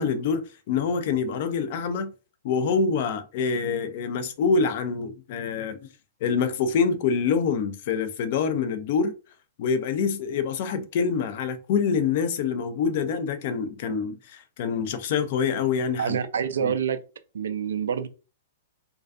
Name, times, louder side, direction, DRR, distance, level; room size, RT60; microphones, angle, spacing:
voice 1, 0.0-2.1 2.4-5.9 6.2-9.1 9.6-16.2 16.6-16.7, left 5 dB, 55° left, 0.4 m, -26 dB
voice 2, 16.0-17.0 17.3-18.1, right 7 dB, 75° right, 0.3 m, -26 dB
2.4 x 2.2 x 2.4 m
hypercardioid pair, 115°, 0 cm